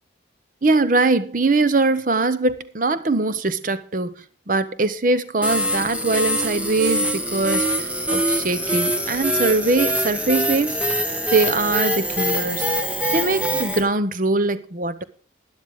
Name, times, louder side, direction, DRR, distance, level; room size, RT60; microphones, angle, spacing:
voice 1, 0.6-4.1 4.5-10.8 11.3-12.7 13.1-15.0, right 3 dB, 45° right, 0.7 m, -22 dB
sound 1, 5.4-13.8, equal, 5° right, 1.1 m, -23 dB
12.5 x 10.5 x 3.6 m
head